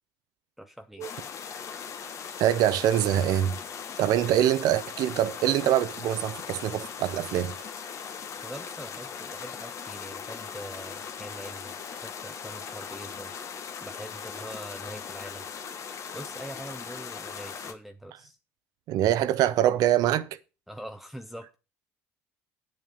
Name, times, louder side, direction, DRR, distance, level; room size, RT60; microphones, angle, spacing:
voice 1, 0.6-1.1 8.4-11.7 12.0-13.3 13.8-15.5 16.1-18.4 20.7-21.6, right 1 dB, ahead, 0.8 m, -43 dB
sound 1, 1.0-17.7, left 7 dB, 50° left, 1.3 m, -39 dB
voice 2, 2.4-3.6 4.0-7.6 18.9-20.4, right 12 dB, 70° right, 0.8 m, -24 dB
9.1 x 7.8 x 5.3 m
supercardioid pair, 80°, 7 cm